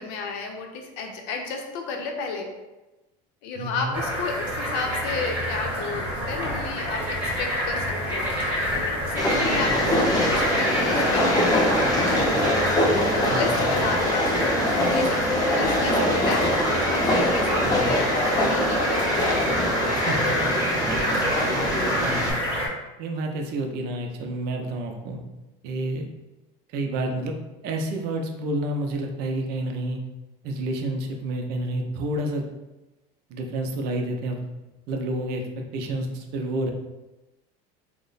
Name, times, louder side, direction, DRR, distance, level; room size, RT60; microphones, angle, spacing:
voice 1, 0.0-2.5 3.4-20.5 21.5-21.9, left 4 dB, 70° left, 3 dB, 0.7 m, -33 dB
voice 2, 3.6-4.0 9.3-9.8 13.3-13.7 17.6-18.0 19.9-20.2 22.0-22.4 23.0-25.2 25.6-26.1 26.7-27.3 27.6-30.0 30.4-32.5 33.3-34.4 34.9-36.7, right 1 dB, 60° right, 3 dB, 0.5 m, -29 dB
sound 1, 3.9-22.7, equal, 5° right, 0.9 m, -27 dB
Train, 9.2-22.3, left 1 dB, 20° left, 0.6 m, -24 dB
2.9 x 2.1 x 3.9 m, 1.0 s
cardioid pair, 145°, 19 cm